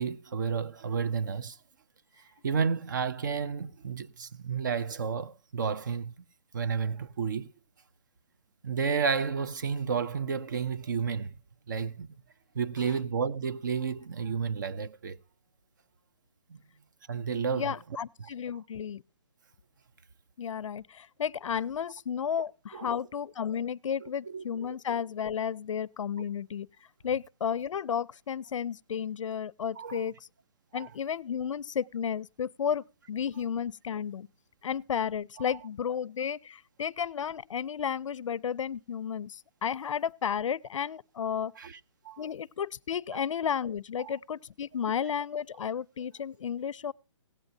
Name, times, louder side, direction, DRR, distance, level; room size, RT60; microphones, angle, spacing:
voice 1, 0.0-1.6 2.4-6.1 6.5-7.5 8.6-11.4 11.7-12.2 12.5-15.2 16.5-16.6 17.1-17.7 18.2-18.3 22.7-22.9 24.0-24.8 26.2-26.3 29.8-30.1 30.7-30.9 41.6-41.8 42.0-42.3 43.1-43.2 44.0-44.1, right 6 dB, 40° right, 0.4 m, -31 dB
voice 2, 17.5-19.0 20.4-26.7 27.0-30.1 30.7-34.3 34.6-41.5 42.2-46.9, left 8 dB, 80° left, 0.4 m, -33 dB
17.0 x 8.9 x 2.6 m
hypercardioid pair, 170°, 16 cm